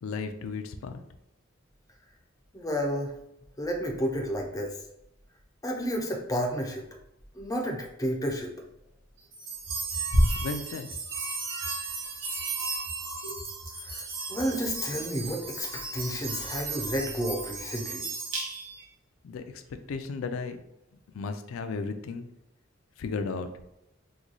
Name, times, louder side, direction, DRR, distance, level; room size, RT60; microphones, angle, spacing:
voice 1, 0.0-1.0 10.4-10.9 19.2-19.6 19.9-20.6 21.1-22.3 23.0-23.5, left 4 dB, 90° left, 7 dB, 0.4 m, -34 dB
voice 2, 2.5-3.1 3.6-4.8 5.6-6.9 7.3-8.5 13.8-18.1, equal, 15° left, 2 dB, 0.5 m, -31 dB
sound 1, 9.3-18.8, right 2 dB, 75° right, 0.9 m, -32 dB
3.1 x 2.2 x 3.8 m, 0.84 s
head